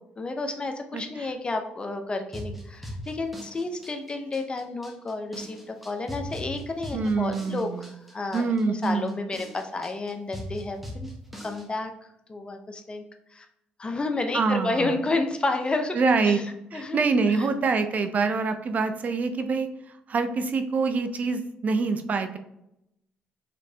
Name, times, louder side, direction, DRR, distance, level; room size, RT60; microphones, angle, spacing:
voice 1, 0.2-8.4 8.8-11.1 11.4-13.0 13.3-13.5 13.8-16.4 16.7-17.1 17.4-17.5, left 3 dB, 30° left, 6 dB, 0.7 m, -31 dB
voice 2, 0.9-1.3 6.9-7.9 8.3-9.2 14.3-14.9 15.9-16.4 16.7-22.4, right 4 dB, 45° right, 8 dB, 0.6 m, -25 dB
sound 1, 2.3-11.7, equal, 5° right, 1.1 m, -40 dB
5.2 x 3.2 x 2.8 m, 0.82 s
cardioid pair, 80°, 4 cm